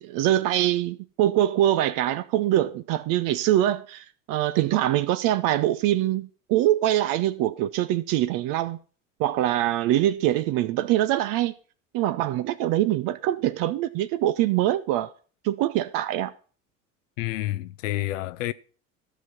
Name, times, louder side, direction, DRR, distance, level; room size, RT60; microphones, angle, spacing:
voice 1, 0.0-8.8 9.2-11.5 11.9-15.1 15.4-16.3, right 13 dB, 55° right, 0.7 m, -24 dB
voice 2, 17.2-18.5, left 16 dB, 70° left, 0.5 m, -29 dB
13.5 x 6.0 x 5.7 m
hypercardioid pair, 65°, 40 cm